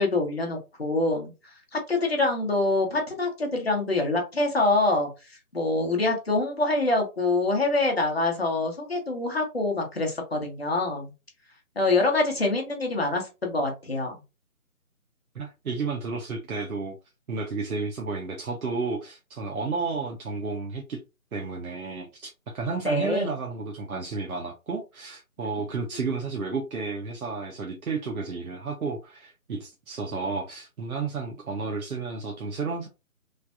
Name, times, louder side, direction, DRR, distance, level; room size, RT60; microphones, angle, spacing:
voice 1, 0.0-1.3 1.7-5.1 5.5-11.1 11.8-14.1 22.8-23.3, left 2 dB, 45° left, 2 dB, 0.9 m, -25 dB
voice 2, 15.3-17.0 17.3-21.0 21.3-32.9, right 4 dB, 70° right, 1 dB, 0.7 m, -32 dB
3.2 x 2.1 x 2.6 m, 0.27 s
figure-of-eight pair, 175°, 44 cm